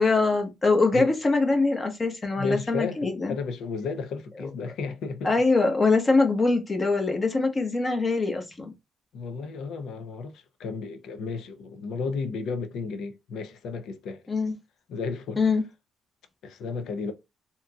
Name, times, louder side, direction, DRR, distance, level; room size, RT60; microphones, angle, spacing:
voice 1, 0.0-3.3 5.2-8.7 14.3-14.5 15.4-15.6, left 3 dB, 30° left, 1.0 m, -23 dB
voice 2, 2.4-5.3 9.1-14.2 14.9-15.4 16.4-17.1, left 4 dB, 80° left, 0.5 m, -33 dB
3.6 x 2.8 x 2.3 m
cardioid pair, 90°, 0 cm